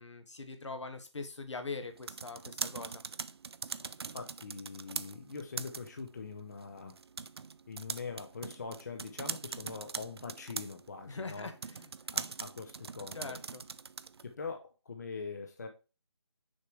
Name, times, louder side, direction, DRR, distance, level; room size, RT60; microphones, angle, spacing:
voice 1, 0.0-3.0 11.1-11.9 13.1-13.6, left 3 dB, 75° left, 7 dB, 1.6 m, -42 dB
sound 1, 1.8-14.3, right 5 dB, 60° right, 0.4 m, -42 dB
voice 2, 3.8-7.0 7.7-11.5 12.1-13.4 14.2-15.7, left 4 dB, 35° left, 4 dB, 0.8 m, -43 dB
6.6 x 4.7 x 4.7 m, 0.31 s
hypercardioid pair, 170°, 15 cm